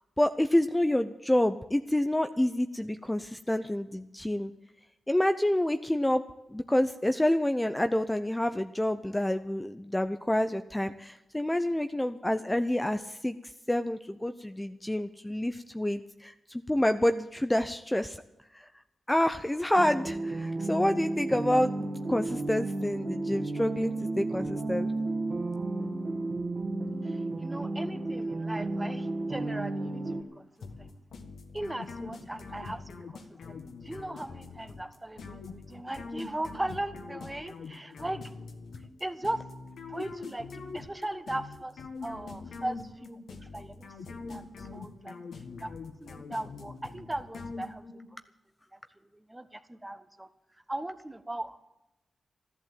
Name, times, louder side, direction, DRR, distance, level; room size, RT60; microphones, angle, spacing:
voice 1, 0.2-4.5 5.1-6.2 6.5-13.4 13.7-18.2 18.5-18.7 19.1-24.9, left 1 dB, 15° left, 9 dB, 0.7 m, -28 dB
sound 1, 19.8-30.2, right 2 dB, 50° right, 2.1 m, -33 dB
voice 2, 27.0-30.5 30.8-30.9 31.5-33.5 33.8-38.2 39.0-39.4 39.9-41.7 42.0-44.4 44.7-45.2 45.6-45.7 46.0-47.8 49.3-50.3 50.7-51.7, right 1 dB, 15° right, 10 dB, 1.3 m, -38 dB
sound 2, 30.6-48.1, left 4 dB, 80° left, 1.5 m, -43 dB
13.5 x 11.5 x 7.7 m, 0.93 s
cardioid pair, 45°, 0 cm